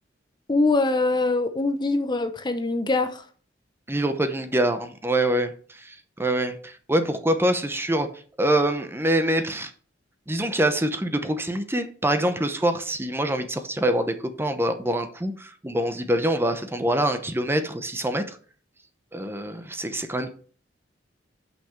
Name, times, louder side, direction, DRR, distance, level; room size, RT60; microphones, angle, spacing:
voice 1, 0.5-3.2, left 3 dB, 25° left, 0.7 m, -23 dB
voice 2, 3.9-9.7 10.3-18.4 19.1-20.3, right 1 dB, 15° right, 0.8 m, -25 dB
5.9 x 5.8 x 6.6 m
head